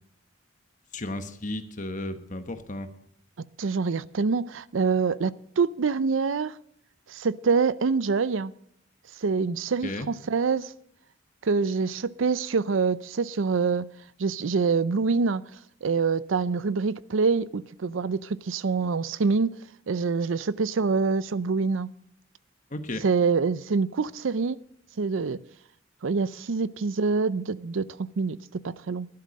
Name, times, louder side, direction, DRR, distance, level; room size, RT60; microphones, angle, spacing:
voice 1, 0.9-2.9 9.8-10.1 22.7-23.0, left 1 dB, 40° left, 1.2 m, -34 dB
voice 2, 3.6-6.5 7.1-8.5 9.2-10.7 11.4-13.9 14.2-15.4 15.8-19.5 19.9-21.9 23.0-24.6 25.0-25.4 26.0-29.1, right 4 dB, 80° right, 0.5 m, -25 dB
12.5 x 11.5 x 6.4 m
head